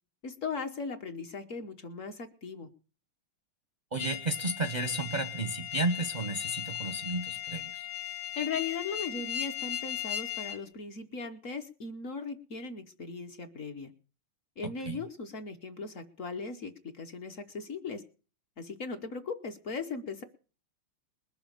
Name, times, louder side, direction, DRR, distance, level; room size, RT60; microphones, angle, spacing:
voice 1, 0.2-2.7 8.4-13.9 14.6-18.0 18.6-20.2, left 4 dB, 50° left, 7 dB, 1.1 m, -38 dB
voice 2, 3.9-7.9 14.6-15.0, right 2 dB, 40° right, 8 dB, 0.6 m, -33 dB
sound 1, 4.0-10.6, left 12 dB, 80° left, 2.4 m, -37 dB
21.0 x 7.1 x 6.6 m, 0.39 s
omnidirectional pair, 2.3 m